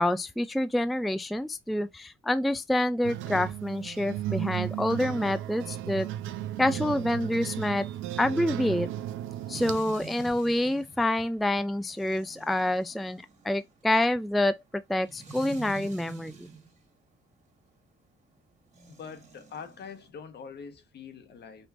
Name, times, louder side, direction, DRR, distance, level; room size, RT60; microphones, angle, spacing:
voice 1, 0.0-6.1 6.6-7.9 8.2-8.9 9.5-16.5, left 1 dB, ahead, 0.4 m, -27 dB
sound 1, 3.0-9.8, right 13 dB, 85° right, 0.6 m, -35 dB
sound 2, 9.5-16.8 18.7-20.1, right 4 dB, 35° right, 1.9 m, -47 dB
voice 2, 18.9-21.7, left 6 dB, 55° left, 1.2 m, -44 dB
5.2 x 3.1 x 2.5 m
cardioid pair, 90°, 20 cm